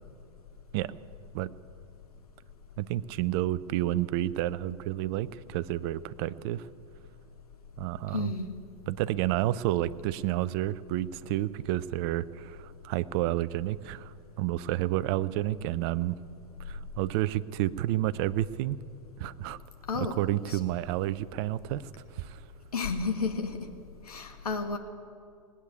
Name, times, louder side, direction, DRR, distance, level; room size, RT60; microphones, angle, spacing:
voice 1, 2.8-6.7 7.8-8.3 8.9-16.2 16.6-18.8 19.2-19.6 19.9-22.4, right 14 dB, 45° right, 17 dB, 0.5 m, -30 dB
voice 2, 8.1-8.5 19.9-20.1 20.5-20.6 22.7-23.6 24.1-24.8, left 4 dB, 80° left, 6 dB, 1.3 m, -31 dB
19.5 x 8.4 x 8.4 m, 2.4 s
hypercardioid pair, 105°, 19 cm